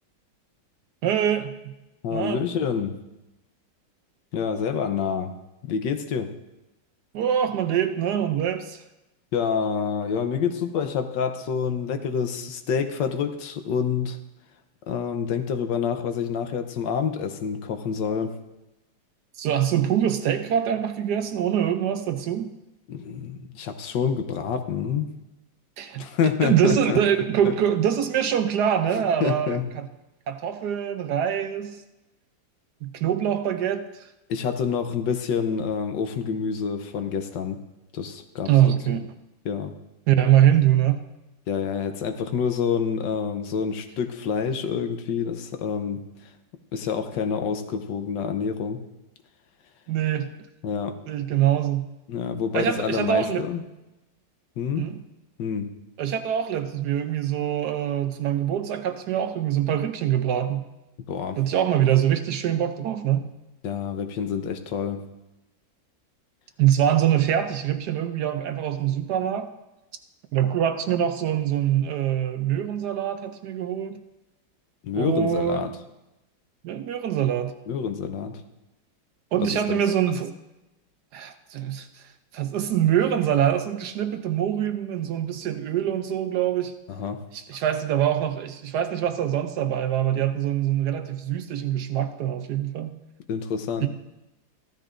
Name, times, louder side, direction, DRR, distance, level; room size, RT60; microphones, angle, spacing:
voice 1, 1.0-1.7 2.1-2.4 7.1-8.8 19.4-22.5 25.8-26.1 26.4-29.9 30.3-31.8 32.8-34.1 38.5-39.1 40.1-41.1 49.9-50.4 51.1-51.9 52.5-53.5 54.8-55.0 56.0-60.7 61.4-63.3 66.6-69.5 70.3-74.0 74.9-75.6 76.6-77.6 79.3-80.3 81.1-86.8 87.3-93.0 93.8-93.9, right 10 dB, 70° right, 9 dB, 1.1 m, -24 dB
voice 2, 2.0-3.0 4.3-5.3 5.6-6.3 9.3-14.2 14.9-18.4 22.9-25.1 26.0-27.0 27.4-27.5 29.2-29.7 34.3-37.6 37.9-38.5 39.4-39.7 41.5-46.1 46.7-48.8 50.6-51.0 52.1-53.6 54.6-54.9 55.4-55.7 61.1-61.4 63.6-65.0 74.8-75.7 77.7-78.4 79.4-79.8 86.9-87.2 93.3-93.9, left 6 dB, 75° left, 7 dB, 1.4 m, -27 dB
15.0 x 13.0 x 2.5 m, 0.98 s
omnidirectional pair, 2.1 m